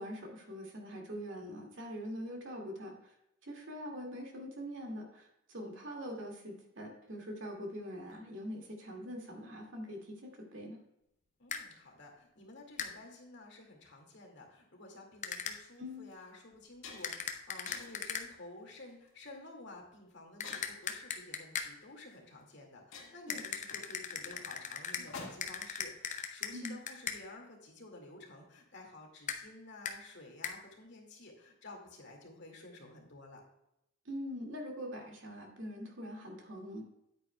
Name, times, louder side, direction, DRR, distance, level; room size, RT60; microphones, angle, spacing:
voice 1, 0.0-3.1 3.4-10.8 15.8-16.1 23.3-23.4 25.2-25.3 26.5-26.8 34.1-36.8, equal, 70° right, 1 dB, 2.1 m, -43 dB
voice 2, 11.4-33.4, left 2 dB, 60° left, 1 dB, 2.1 m, -52 dB
sound 1, 11.5-11.6 12.8-12.9 15.2-15.6 17.0-18.3 20.4-21.7 23.3-25.1 25.4-27.2 29.3-29.4 29.9-30.0 30.4-30.6, left 7 dB, 40° left, 0.7 m, -38 dB
sound 2, 15.4-15.6 16.1-16.2 16.5-17.3 17.7-18.1 18.8-19.1 20.4-21.0 22.1-22.2 22.5-22.6 22.9-25.7, left 4 dB, 85° left, 1.8 m, -50 dB
9.6 x 8.9 x 2.3 m, 0.83 s
head